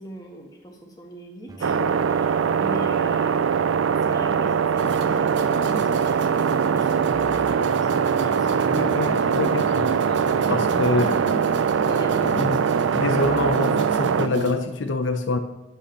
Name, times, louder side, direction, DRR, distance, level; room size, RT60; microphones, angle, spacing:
voice 1, 0.0-3.4 3.9-9.5 10.1-11.3 11.9-12.2, right 1 dB, 20° left, 0 dB, 1.7 m, -40 dB
Keyboard (musical), 1.5-13.5, right 1 dB, 20° right, 0.8 m, -44 dB
sound 1, 1.6-14.3, right 7 dB, 80° right, 0.4 m, -22 dB
sound 2, 4.8-14.6, right 3 dB, 65° right, 0.8 m, -32 dB
voice 2, 8.7-9.9 10.5-11.4 12.2-12.6 12.9-15.4, left 2 dB, 70° left, 8 dB, 0.7 m, -25 dB
9.8 x 5.6 x 6.4 m, 1.0 s
head